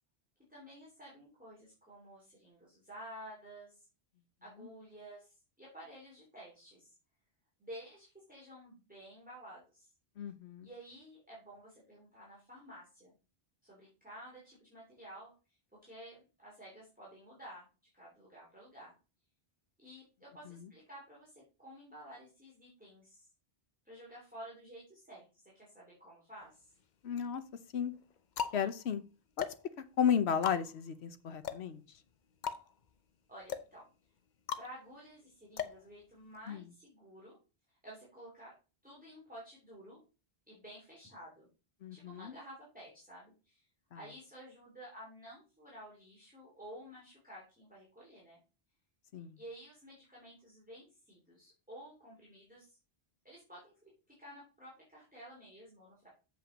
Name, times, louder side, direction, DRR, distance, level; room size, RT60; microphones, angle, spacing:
voice 1, 0.5-3.9 4.4-6.9 7.6-9.9 10.6-13.1 13.6-15.6 15.8-17.7 17.9-18.9 19.8-23.3 23.8-26.7 33.3-33.8 34.6-37.4 37.7-38.5 38.8-40.0 40.5-41.5 41.9-43.7 43.9-48.4 49.4-52.8 53.2-53.9 54.2-56.1, equal, 10° right, -5 dB, 3.1 m, -52 dB
voice 2, 10.2-10.7 20.5-20.6 27.0-27.4 27.7-27.9 28.5-29.0 29.4-29.5 30.0-31.8 36.5-36.6 41.8-42.3 49.1-49.4, left 8 dB, 85° left, 11 dB, 1.2 m, -33 dB
sound 1, 26.4-27.1 27.8-36.6, left 7 dB, 50° left, 0.8 m, -42 dB
7.8 x 5.5 x 5.1 m, 0.33 s
omnidirectional pair, 1.1 m